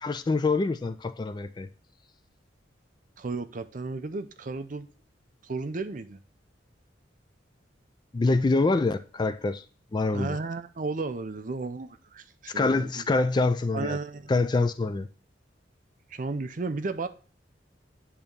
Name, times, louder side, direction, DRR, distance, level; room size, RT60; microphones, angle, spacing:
voice 1, 0.0-1.7 8.1-9.6 9.9-10.4 12.5-14.0 14.3-15.1, left 3 dB, 25° left, 0.3 m, -25 dB
voice 2, 3.2-4.9 5.4-6.2 10.1-13.0 13.7-14.3 16.1-17.1, right 3 dB, 45° right, 0.5 m, -33 dB
8.7 x 3.0 x 5.1 m
head